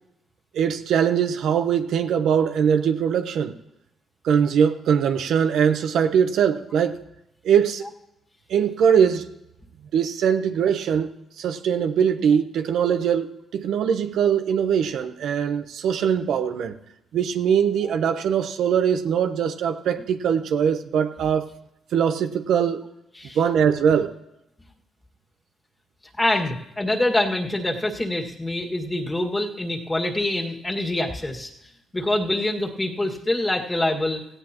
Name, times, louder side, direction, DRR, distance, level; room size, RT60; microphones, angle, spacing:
voice 1, 0.5-3.5 4.2-7.0 7.4-7.9 8.5-9.3 9.9-16.8 17.1-21.5 21.9-22.9 23.3-24.1, right 8 dB, 75° right, 8 dB, 0.9 m, -21 dB
voice 2, 26.2-31.5 31.9-34.2, left 1 dB, 15° left, 2 dB, 1.9 m, -25 dB
17.0 x 16.0 x 3.0 m, 0.85 s
cardioid pair, 90°, 0 cm